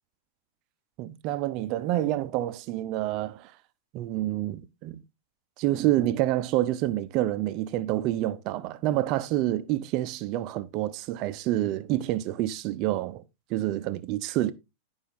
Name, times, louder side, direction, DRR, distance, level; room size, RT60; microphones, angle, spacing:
voice 1, 1.0-3.5 3.9-5.0 5.6-13.2 13.5-14.5, right 14 dB, 50° right, 0.7 m, -28 dB
11.5 x 5.2 x 3.7 m
hypercardioid pair, 110°, 0 cm